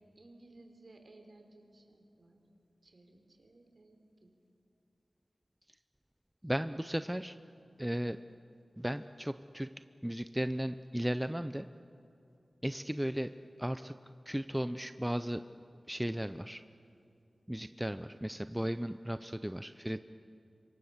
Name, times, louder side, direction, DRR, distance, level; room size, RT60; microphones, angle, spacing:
voice 1, 0.2-2.4 2.8-4.3, right 2 dB, 50° right, 4 dB, 3.7 m, -58 dB
voice 2, 6.4-7.4 7.8-8.2 8.8-9.7 10.0-11.7 12.6-13.3 13.6-15.4 15.9-16.6 17.5-20.0, equal, 5° right, 11 dB, 0.5 m, -35 dB
27.0 x 24.0 x 7.2 m, 2.7 s
wide cardioid pair, 90°, 0 cm